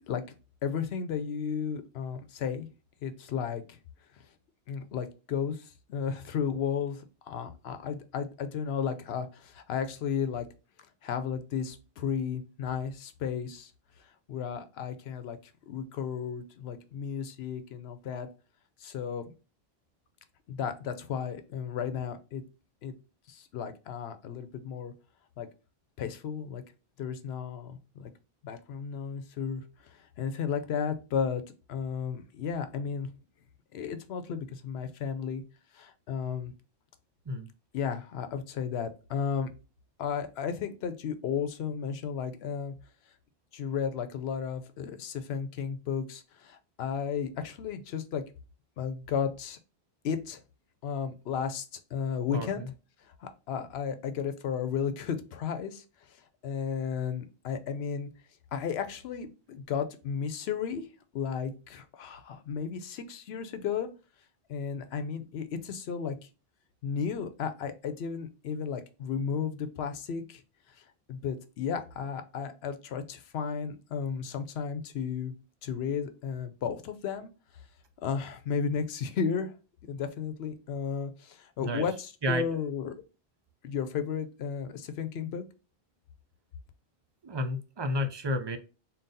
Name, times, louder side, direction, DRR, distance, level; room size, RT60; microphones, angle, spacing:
voice 1, 0.6-2.7 3.0-3.8 4.7-10.5 11.0-13.7 14.3-15.4 15.7-18.3 18.8-19.2 20.5-22.4 22.8-22.9 23.3-24.9 25.4-25.5 26.0-26.6 27.0-28.1 28.4-31.4 31.7-33.1 33.7-35.4 35.7-36.5 37.7-39.5 40.0-42.7 43.5-48.2 48.8-49.6 50.0-50.4 50.8-51.6 51.9-52.6 53.0-56.2 56.4-58.1 58.5-60.9 61.1-63.9 64.5-66.3 66.8-70.4 70.8-75.3 75.6-77.3 78.0-79.5 79.9-83.0 83.6-85.4, left 7 dB, 80° left, 9 dB, 0.9 m, -34 dB
voice 2, 52.3-52.7 81.6-81.9 82.2-82.4 87.2-88.6, left 1 dB, 40° right, 8 dB, 0.4 m, -31 dB
3.9 x 2.3 x 3.9 m, 0.31 s
omnidirectional pair, 1.1 m